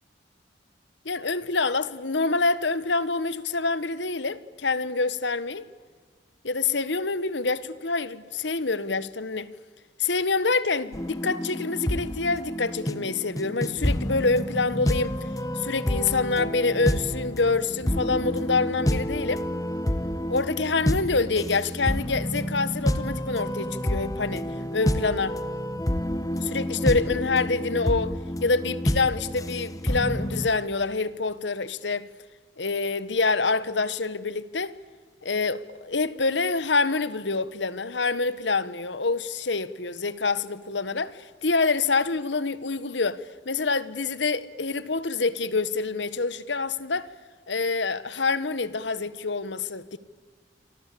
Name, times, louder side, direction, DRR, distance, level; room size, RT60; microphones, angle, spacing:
voice 1, 1.0-5.6 6.4-9.5 10.0-15.1 15.5-19.4 20.3-24.4 24.7-25.4 26.4-28.1 28.4-32.1 32.6-34.7 35.2-47.1 47.5-50.0, left 3 dB, 75° left, 1.3 m, -26 dB
sound 1, 10.9-30.5, equal, 20° left, 1.3 m, -29 dB
28.0 x 25.0 x 8.6 m
head